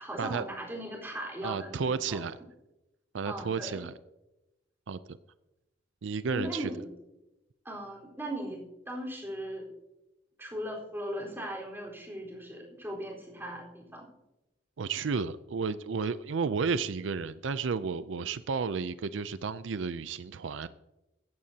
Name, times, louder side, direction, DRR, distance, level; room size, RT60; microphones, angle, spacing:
voice 1, 0.0-2.2 3.3-3.8 6.3-6.9 7.6-9.7 10.4-14.1, right 1 dB, 10° right, -2 dB, 4.2 m, -38 dB
voice 2, 1.4-2.4 3.1-3.9 4.9-5.0 6.0-6.7 14.8-20.7, right 5 dB, 85° right, 14 dB, 0.5 m, -32 dB
16.0 x 14.0 x 2.8 m, 0.96 s
head